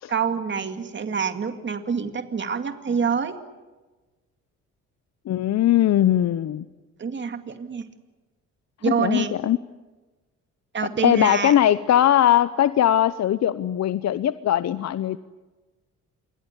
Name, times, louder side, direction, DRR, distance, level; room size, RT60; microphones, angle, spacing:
voice 1, 0.1-3.4 7.0-7.9 8.8-9.3 10.7-11.5, right 6 dB, 40° right, 8 dB, 2.2 m, -26 dB
voice 2, 5.3-6.7 8.9-9.6 11.0-15.2, left 11 dB, 60° left, 14 dB, 0.8 m, -20 dB
28.0 x 22.0 x 8.2 m, 1.2 s
cardioid pair, 90°, 30 cm